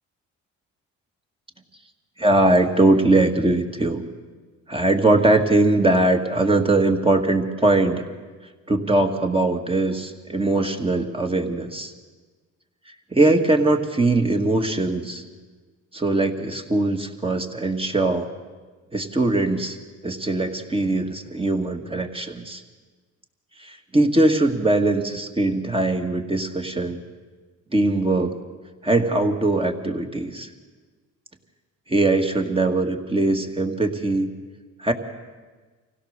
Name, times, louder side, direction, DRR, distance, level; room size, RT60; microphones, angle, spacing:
voice 1, 2.2-4.0 4.7-8.0 8.7-11.9 13.1-15.2 15.9-18.3 18.9-19.8 20.0-22.6 23.6-27.0 27.7-28.4 28.8-30.5 31.9-34.3 34.8-34.9, right 2 dB, 20° right, 4 dB, 1.9 m, -21 dB
25.0 x 16.5 x 6.7 m, 1.4 s
cardioid pair, 90°, 30 cm